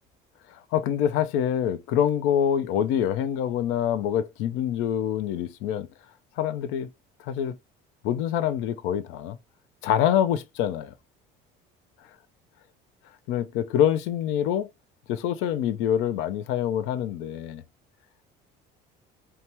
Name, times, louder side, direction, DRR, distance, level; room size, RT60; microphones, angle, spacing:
voice 1, 0.7-5.9 6.4-6.9 7.3-7.6 8.0-9.4 9.8-10.9 13.3-14.7 15.1-17.6, left 10 dB, 75° left, 0.5 m, -25 dB
2.8 x 2.3 x 2.9 m
cardioid pair, 105°, 21 cm